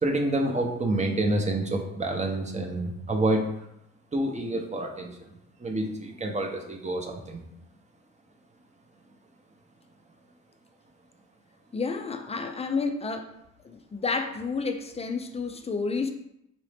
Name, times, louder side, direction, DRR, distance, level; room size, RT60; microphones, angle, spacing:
voice 1, 0.0-3.5 4.1-5.2 5.6-7.4, right 2 dB, 25° right, 0.6 m, -28 dB
voice 2, 11.7-13.3 13.6-16.1, left 4 dB, 20° left, 0.3 m, -30 dB
4.0 x 2.6 x 3.3 m
cardioid pair, 90°, 30 cm